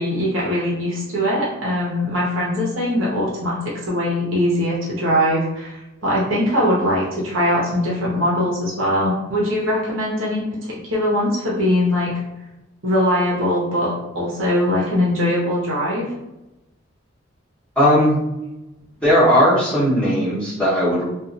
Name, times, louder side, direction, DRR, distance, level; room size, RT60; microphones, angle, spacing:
voice 1, 0.0-3.6 3.9-10.4 10.7-12.1 12.8-16.0, left 1 dB, 85° right, -6 dB, 0.9 m, -21 dB
voice 2, 17.8-18.2 19.0-21.1, equal, 5° left, -12 dB, 1.1 m, -17 dB
2.7 x 2.4 x 2.5 m, 0.96 s
head